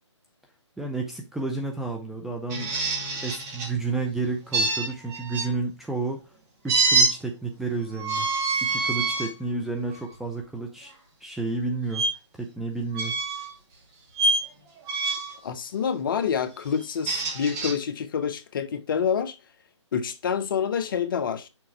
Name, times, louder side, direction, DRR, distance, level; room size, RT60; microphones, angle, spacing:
voice 1, 0.8-2.9 3.2-6.2 6.6-8.3 8.6-10.9 11.2-12.1 12.3-13.1, right 3 dB, ahead, 0.4 m, -31 dB
sound 1, 2.5-3.7 4.5-5.5 6.7-7.1 8.0-9.3 9.9-10.1 11.9-12.1 12.9-13.5 14.1-14.5 14.9-15.4 16.8-17.7, right 3 dB, 20° right, 2.1 m, -25 dB
voice 2, 15.4-19.4 19.9-21.5, left 7 dB, 45° left, 0.8 m, -27 dB
6.3 x 3.8 x 4.5 m
hypercardioid pair, 150°, 16 cm